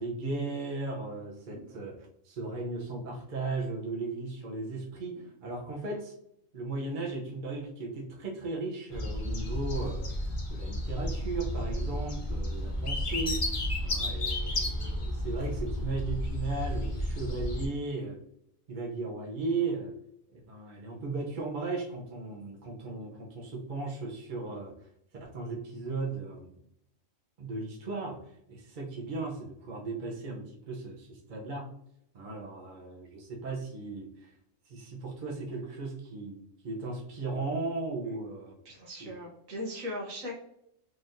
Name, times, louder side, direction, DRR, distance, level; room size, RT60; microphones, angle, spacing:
voice 1, 0.0-6.1 6.5-10.0 10.5-18.2 18.7-19.9 20.3-24.7 25.2-26.6 27.4-28.2 28.5-31.7 32.1-34.3 34.7-38.5 39.0-39.1, right 3 dB, 45° right, -2 dB, 0.8 m, -36 dB
sound 1, 8.9-17.7, left 1 dB, 45° left, 0.4 m, -32 dB
voice 2, 38.6-40.3, left 1 dB, 75° right, -1 dB, 1.4 m, -38 dB
3.9 x 3.1 x 2.6 m, 0.75 s
omnidirectional pair, 1.4 m